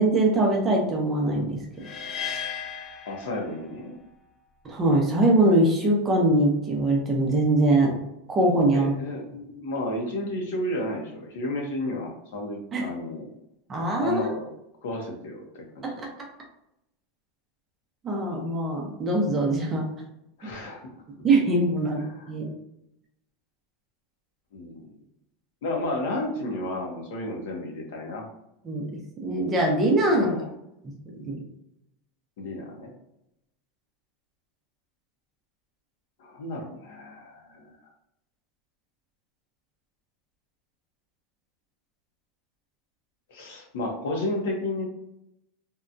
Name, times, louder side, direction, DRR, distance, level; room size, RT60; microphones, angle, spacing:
voice 1, 0.0-1.6 4.6-8.0 8.3-8.9 12.7-12.8 13.7-14.2 15.8-15.9 18.0-19.9 21.2-22.5 28.6-28.9 29.2-30.3 31.2-31.4, right 2 dB, 20° right, 0 dB, 0.6 m, -22 dB
sound 1, 1.8-4.0, left 7 dB, 25° left, 0.3 m, -35 dB
voice 2, 3.1-4.0 8.7-13.3 14.0-14.5 14.8-16.0 20.4-20.8 22.0-22.3 24.5-24.9 25.6-28.3 30.0-30.5 32.4-32.9 36.2-37.7 43.3-44.8, left 1 dB, 80° left, 1 dB, 0.8 m, -32 dB
2.8 x 2.2 x 2.5 m, 0.82 s
supercardioid pair, 160°, 0 cm